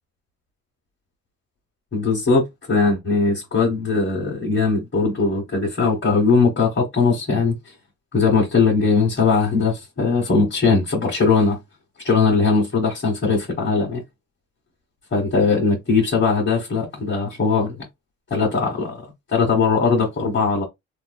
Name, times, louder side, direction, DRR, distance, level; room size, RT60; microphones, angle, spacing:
voice 1, 1.9-7.7 8.1-11.6 12.0-14.0 15.1-17.8 18.3-20.6, left 4 dB, 40° left, 1.3 m, -20 dB
3.0 x 2.5 x 2.2 m
cardioid pair, 90°, 30 cm